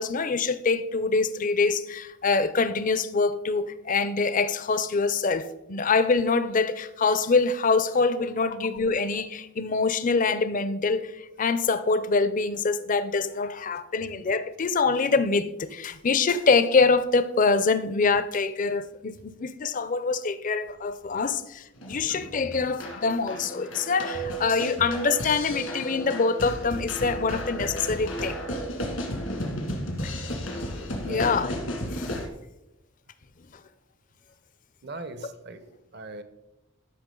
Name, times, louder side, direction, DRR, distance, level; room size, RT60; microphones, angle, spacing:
voice 1, 0.0-28.5 30.0-30.1 30.5-30.6 31.0-31.5 31.9-32.1, left 4 dB, 40° left, 0.5 m, -25 dB
sound 1, 21.8-32.3, equal, 85° left, 2.1 m, -33 dB
voice 2, 34.8-35.6 35.9-36.2, right 2 dB, 55° right, 0.8 m, -39 dB
13.0 x 5.8 x 3.8 m
head